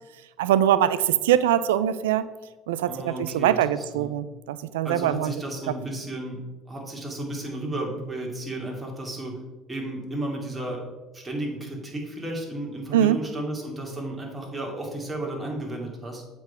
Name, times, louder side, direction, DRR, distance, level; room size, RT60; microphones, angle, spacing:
voice 1, 0.4-2.3 2.7-5.3 12.9-13.2, right 11 dB, 90° right, 15 dB, 0.3 m, -22 dB
voice 2, 2.9-4.1 4.8-6.4 6.7-9.4 9.7-10.8 11.1-16.2, right 1 dB, 20° right, -1 dB, 2.5 m, -33 dB
7.4 x 3.8 x 6.0 m, 1.1 s
hypercardioid pair, 75°, 0 cm